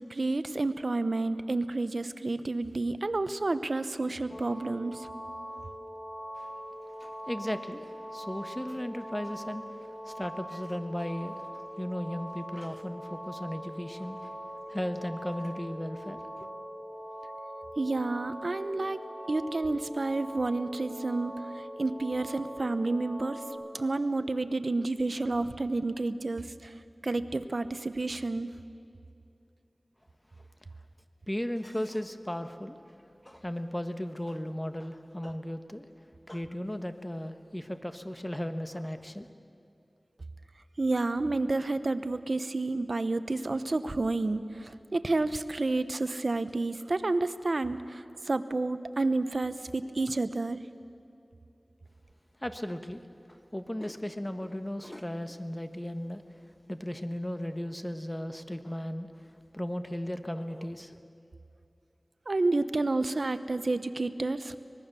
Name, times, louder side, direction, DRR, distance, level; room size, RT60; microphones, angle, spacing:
voice 1, 0.1-5.1 17.8-19.0 19.3-23.4 23.7-26.7 27.0-28.5 40.8-50.6 62.3-64.6, right 2 dB, 70° right, 12 dB, 0.8 m, -30 dB
sound 1, 4.3-23.5, equal, 60° left, 5.1 m, -42 dB
voice 2, 7.0-11.5 11.8-14.3 14.7-16.5 31.3-32.8 33.2-35.8 36.3-39.3 52.4-53.0 53.3-56.2 56.7-59.1 59.5-61.0, left 1 dB, 20° left, 8 dB, 1.3 m, -36 dB
24.5 x 20.5 x 6.9 m, 2.6 s
wide cardioid pair, 40°, 0 cm